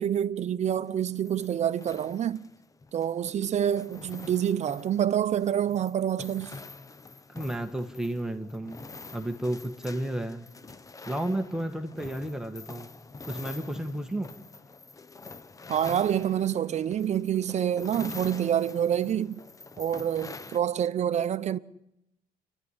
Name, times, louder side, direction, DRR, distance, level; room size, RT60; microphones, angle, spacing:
voice 1, 0.0-2.4 2.9-6.6 15.7-19.4 19.8-21.6, right 9 dB, 40° right, 0.8 m, -27 dB
sound 1, 0.7-20.6, left 3 dB, 20° left, 0.7 m, -46 dB
voice 2, 7.3-10.5 11.0-14.3, right 1 dB, 5° right, 1.4 m, -33 dB
28.5 x 11.5 x 9.8 m
cardioid pair, 110°, 17 cm